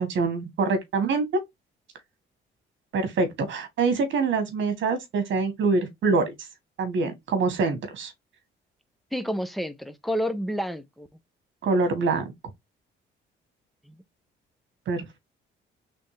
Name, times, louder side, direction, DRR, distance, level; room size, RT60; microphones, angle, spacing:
voice 1, 0.0-1.4 2.9-6.3 6.8-8.1 11.6-12.3 14.9-15.2, right 4 dB, 70° right, 1.8 m, -25 dB
voice 2, 9.1-11.1 13.9-14.0, equal, ahead, 0.8 m, -30 dB
4.3 x 3.6 x 3.3 m
cardioid pair, 90°, 20 cm